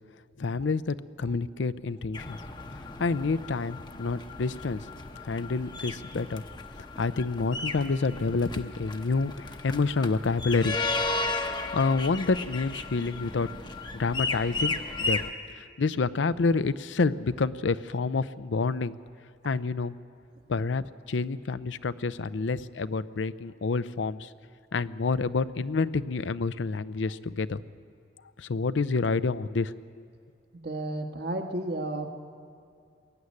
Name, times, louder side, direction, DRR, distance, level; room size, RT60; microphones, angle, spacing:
voice 1, 0.4-2.4 3.0-4.8 5.2-6.4 7.0-10.8 11.7-13.5 13.9-15.2 15.6-19.0 19.4-19.9 20.5-24.3 24.7-27.6 28.4-29.7, left 4 dB, 85° left, 14 dB, 0.6 m, -28 dB
sound 1, 2.1-15.3, left 3 dB, 25° left, 0.8 m, -35 dB
voice 2, 30.6-32.1, right 1 dB, 65° right, 3 dB, 1.6 m, -32 dB
22.0 x 13.0 x 9.7 m, 2.3 s
head